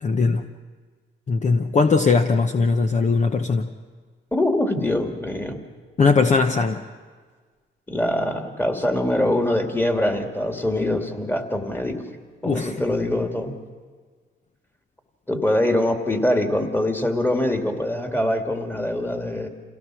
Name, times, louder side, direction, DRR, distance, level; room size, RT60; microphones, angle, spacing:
voice 1, 0.0-0.5 1.3-3.7 6.0-6.8 12.4-12.8, left 4 dB, 35° left, 6 dB, 0.9 m, -20 dB
voice 2, 4.3-5.6 7.9-12.0 12.4-13.6 15.3-19.5, left 1 dB, 10° left, 4 dB, 2.4 m, -23 dB
28.0 x 17.0 x 6.2 m, 1.5 s
cardioid pair, 90°, 20 cm